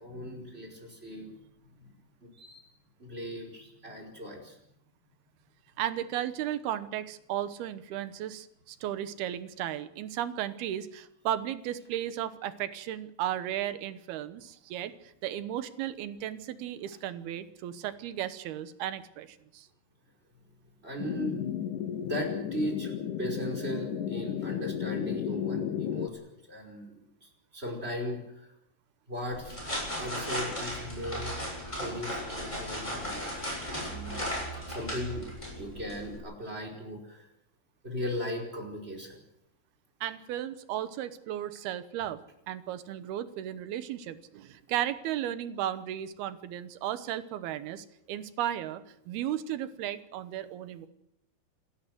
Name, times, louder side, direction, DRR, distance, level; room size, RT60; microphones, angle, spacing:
voice 1, 0.0-1.4 1.8-1.9 2.2-2.6 3.0-4.6 20.8-21.6 22.0-22.9 23.2-26.9 27.2-28.5 29.1-29.5 30.0-31.4 31.8-33.5 33.8-34.2 34.7-35.3 35.6-37.3 37.8-39.2, equal, 15° right, 1 dB, 5.0 m, -37 dB
voice 2, 5.8-19.7 40.0-42.2 42.5-50.9, right 11 dB, 85° right, 13 dB, 3.1 m, -35 dB
sound 1, 21.0-26.1, left 9 dB, 65° left, 2.5 m, -33 dB
sound 2, 29.3-36.2, equal, 5° left, 7.5 m, -36 dB
28.0 x 13.0 x 7.9 m, 0.80 s
omnidirectional pair, 4.3 m